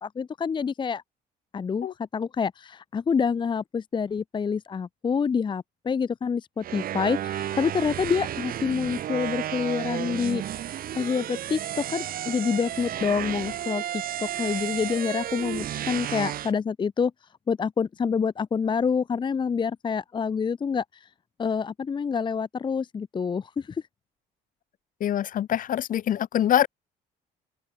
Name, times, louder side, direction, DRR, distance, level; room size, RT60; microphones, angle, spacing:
voice 1, 0.0-1.0 1.5-10.4 10.9-17.1 17.5-20.8 21.4-23.8, left 6 dB, 30° left, 0.8 m, -27 dB
sound 1, 6.6-16.5, right 11 dB, 60° right, 2.2 m, -32 dB
voice 2, 25.0-26.7, left 11 dB, 55° left, 1.3 m, -24 dB
open air
cardioid pair, 110°, 17 cm